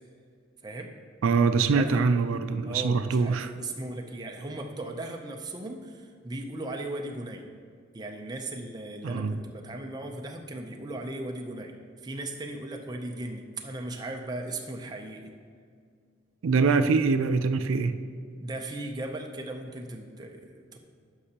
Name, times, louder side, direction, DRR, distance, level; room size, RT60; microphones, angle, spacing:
voice 1, 0.6-1.0 1.7-1.9 2.7-7.5 7.9-11.7 12.0-15.3 18.4-20.8, right 2 dB, 20° right, 2 dB, 0.5 m, -37 dB
voice 2, 1.2-3.5 9.0-9.4 16.4-18.0, right 4 dB, 90° right, 10 dB, 0.4 m, -24 dB
11.5 x 5.4 x 2.9 m, 2.2 s
head